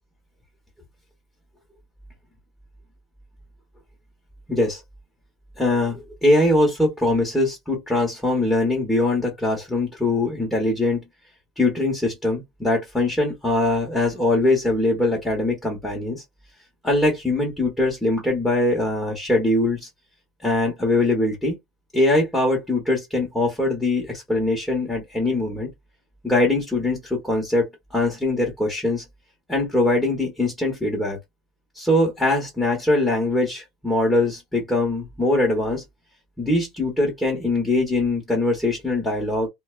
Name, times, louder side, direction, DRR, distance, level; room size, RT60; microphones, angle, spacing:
voice 1, 4.5-4.8 5.6-11.0 11.6-16.2 16.8-19.9 20.4-21.6 21.9-25.7 26.2-29.0 29.5-31.2 31.7-35.8 36.4-39.5, left 2 dB, 5° left, 1.0 m, -22 dB
2.5 x 2.1 x 2.4 m
supercardioid pair, 145°, 0 cm